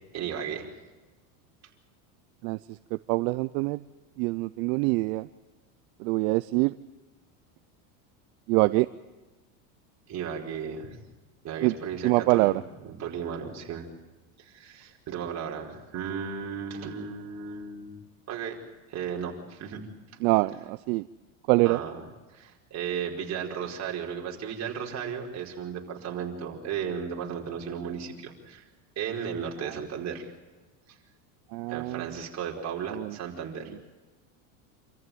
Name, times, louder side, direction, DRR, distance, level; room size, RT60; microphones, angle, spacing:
voice 1, 0.1-0.7 10.1-11.0 11.4-12.6 12.8-13.9 14.4-17.9 18.3-18.6 18.9-19.8 21.6-22.0 22.3-28.7 28.9-30.2 31.7-33.7, right 7 dB, 35° right, 0 dB, 5.0 m, -35 dB
voice 2, 3.1-3.8 4.2-5.3 6.0-6.7 8.5-8.9 11.6-11.7 12.0-12.6 20.2-21.1 21.5-21.8 29.6-29.7 31.5-32.1 32.9-33.1, right 23 dB, 70° right, 14 dB, 0.7 m, -24 dB
27.5 x 14.5 x 9.3 m, 1.2 s
supercardioid pair, 125°, 43 cm